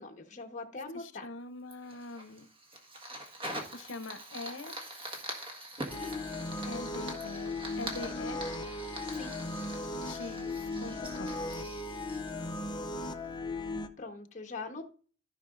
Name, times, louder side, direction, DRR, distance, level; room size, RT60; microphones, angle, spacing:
voice 1, 0.0-1.2 5.8-6.1 9.1-9.3 14.0-14.9, left 3 dB, 40° left, 1.2 m, -42 dB
voice 2, 0.9-2.5 3.7-4.8 6.7-8.5 10.0-11.4, left 2 dB, 75° left, 0.8 m, -43 dB
Fire, 1.7-13.1, right 1 dB, 30° right, 1.6 m, -44 dB
sound 1, 5.9-13.9, left 2 dB, 25° left, 0.6 m, -37 dB
14.5 x 5.6 x 2.5 m
head